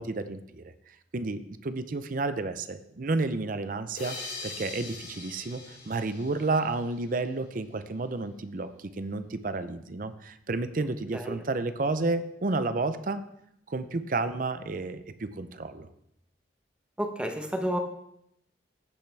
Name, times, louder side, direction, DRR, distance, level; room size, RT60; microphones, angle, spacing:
voice 1, 0.0-4.2 4.4-13.2 13.7-15.9, right 3 dB, 45° right, 11 dB, 0.6 m, -31 dB
sound 1, 4.0-7.3, left 3 dB, 65° left, 4.1 m, -42 dB
voice 2, 17.0-17.8, equal, 5° right, 4 dB, 0.9 m, -30 dB
15.0 x 5.6 x 3.4 m, 0.75 s
head